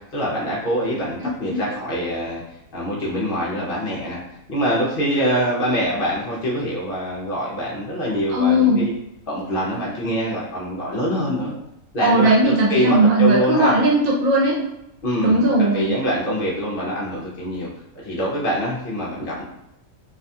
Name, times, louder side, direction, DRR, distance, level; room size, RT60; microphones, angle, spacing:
voice 1, 0.1-2.4 2.7-4.2 4.5-9.0 9.3-11.5 11.9-13.8 15.0-15.4 15.7-17.7 18.0-19.4, equal, 55° left, -6 dB, 0.6 m, -24 dB
voice 2, 8.3-8.9 12.0-14.6 15.2-15.9, right 1 dB, 80° right, -4 dB, 1.1 m, -17 dB
2.6 x 2.2 x 2.6 m, 0.85 s
omnidirectional pair, 1.4 m